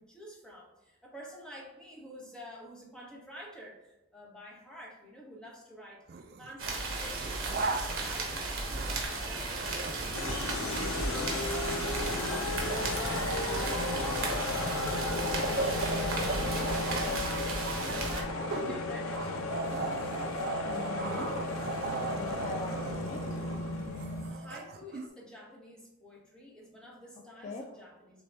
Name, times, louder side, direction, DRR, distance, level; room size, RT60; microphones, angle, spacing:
voice 1, 0.0-7.5 7.7-19.3 22.8-23.0 24.0-28.2, equal, 5° left, -3 dB, 1.0 m, -50 dB
sound 1, 6.1-6.5 7.0-9.1 9.5-25.1, right 4 dB, 50° right, 0.4 m, -38 dB
sound 2, 6.6-18.2, right 3 dB, 80° right, 1.0 m, -35 dB
sound 3, 10.1-24.4, left 3 dB, 85° left, 0.6 m, -34 dB
voice 2, 20.6-21.3 22.0-23.2 24.3-24.5 27.4-27.7, left 3 dB, 35° left, 0 dB, 0.4 m, -41 dB
6.6 x 2.2 x 3.3 m, 0.99 s
head